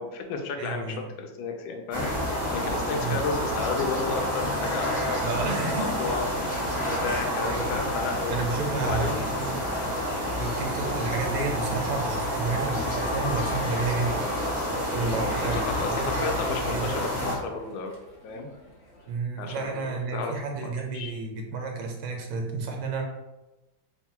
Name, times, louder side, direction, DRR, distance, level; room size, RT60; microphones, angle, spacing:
voice 1, 0.0-6.2 6.9-8.4 8.8-9.6 10.4-10.6 15.0-17.9 18.2-18.5 19.4-21.2, left 4 dB, 75° left, 4 dB, 1.3 m, -33 dB
voice 2, 0.6-1.0 3.0-3.2 5.2-6.2 7.0-7.8 8.3-9.6 10.4-14.3 14.9-16.9 19.1-23.0, right 4 dB, 80° right, 2 dB, 1.5 m, -31 dB
sound 1, 1.9-17.4, equal, 10° right, 0.7 m, -29 dB
sound 2, 12.1-19.1, left 2 dB, 45° left, 0.8 m, -40 dB
3.6 x 2.2 x 4.3 m, 1.0 s
omnidirectional pair, 2.3 m